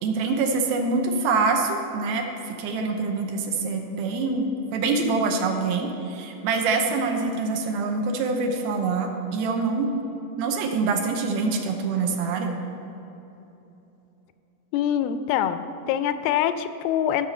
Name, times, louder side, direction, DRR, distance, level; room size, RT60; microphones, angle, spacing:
voice 1, 0.0-9.9 10.4-12.6, right 4 dB, 80° right, 3 dB, 2.7 m, -25 dB
voice 2, 14.7-17.3, left 10 dB, 85° left, 11 dB, 2.3 m, -24 dB
15.0 x 6.5 x 5.5 m, 3.0 s
omnidirectional pair, 4.4 m